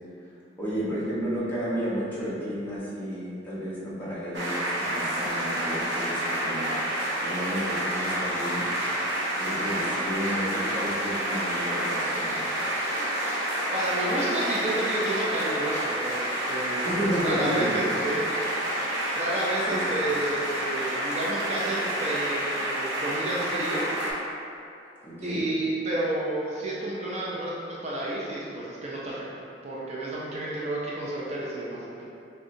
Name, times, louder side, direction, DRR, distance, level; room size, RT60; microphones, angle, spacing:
voice 1, 0.6-6.7 7.2-8.7 9.4-12.4 16.8-17.9 19.7-19.8 25.0-25.5, equal, 10° left, -10 dB, 1.0 m, -32 dB
sound 1, 4.3-24.1, right 1 dB, 70° right, 0.8 m, -29 dB
voice 2, 13.7-18.2 19.1-23.8 25.2-29.2 29.6-32.0, right 1 dB, 40° right, -6 dB, 0.5 m, -30 dB
6.2 x 2.3 x 2.6 m, 2.5 s
head